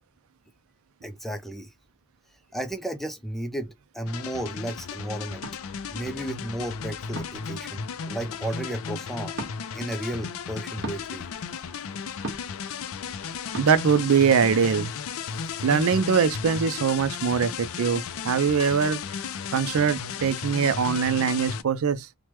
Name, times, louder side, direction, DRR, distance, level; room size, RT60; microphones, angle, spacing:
voice 1, 1.0-1.7 2.5-5.4 5.9-9.3 9.7-11.3, right 1 dB, ahead, 0.4 m, -33 dB
sound 1, 4.1-21.6, left 6 dB, 65° left, 0.4 m, -35 dB
sound 2, 5.4-5.6 7.1-7.5 9.3-9.5 10.8-11.0 12.2-12.6 13.5-13.7, right 1 dB, 50° right, 1.3 m, -35 dB
voice 2, 13.6-14.9 15.6-19.0 19.5-22.1, right 6 dB, 70° right, 0.4 m, -22 dB
3.2 x 2.1 x 2.9 m
head